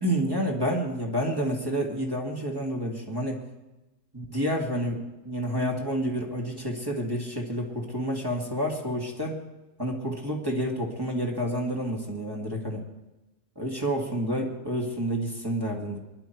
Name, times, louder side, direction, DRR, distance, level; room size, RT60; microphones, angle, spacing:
voice 1, 0.0-3.4 4.1-9.4 9.8-12.8 13.6-16.0, equal, 15° right, -2 dB, 2.2 m, -29 dB
24.5 x 11.0 x 4.6 m, 1.0 s
omnidirectional pair, 1.3 m